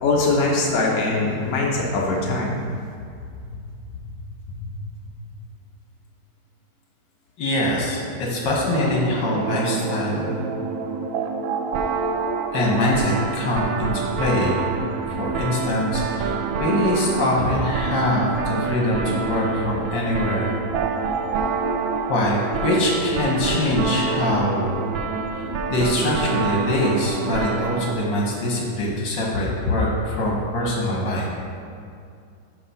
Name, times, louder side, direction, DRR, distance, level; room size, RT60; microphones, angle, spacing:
voice 1, 0.0-2.5, left 3 dB, 55° left, -3 dB, 1.3 m, -21 dB
voice 2, 7.4-10.4 12.5-14.7 15.2-16.3 16.6-20.5 22.1-24.8 25.7-31.3, left 1 dB, 70° left, -3 dB, 1.9 m, -23 dB
sound 1, 8.7-27.9, right 5 dB, 80° right, 1.3 m, -27 dB
6.6 x 4.8 x 5.7 m, 2.4 s
omnidirectional pair, 2.1 m